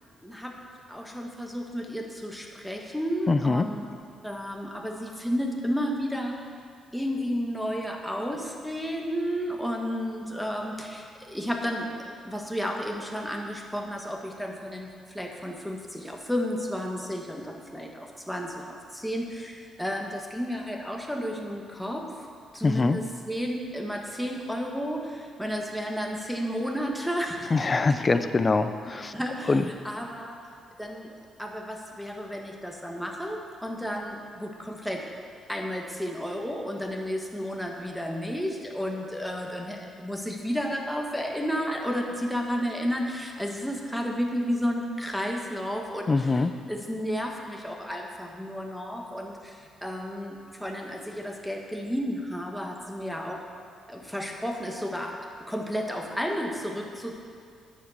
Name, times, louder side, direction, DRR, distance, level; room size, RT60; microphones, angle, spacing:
voice 1, 0.2-0.5 0.9-3.8 4.2-6.4 6.9-22.0 22.5-27.5 27.9-28.0 29.1-30.4 30.8-31.1 31.4-35.0 35.5-46.4 46.7-53.4 53.9-55.1 55.5-57.1, equal, ahead, 1 dB, 1.5 m, -32 dB
voice 2, 3.3-3.7 22.6-23.0 27.5-29.1 29.5-29.6 46.1-46.5, left 3 dB, 30° left, 9 dB, 0.6 m, -23 dB
10.0 x 7.3 x 6.6 m, 2.3 s
cardioid pair, 90°, 0 cm